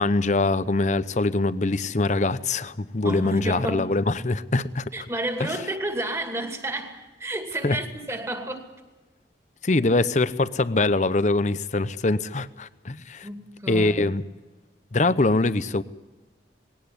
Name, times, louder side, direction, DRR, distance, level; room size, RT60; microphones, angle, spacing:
voice 1, 0.0-4.8 5.4-5.5 7.6-7.8 9.6-13.3 13.7-14.2 14.9-15.8, left 2 dB, 40° left, 0.8 m, -23 dB
voice 2, 3.0-3.9 4.9-8.7 13.2-14.1, right 1 dB, 15° right, 2.5 m, -31 dB
20.0 x 17.5 x 9.7 m
head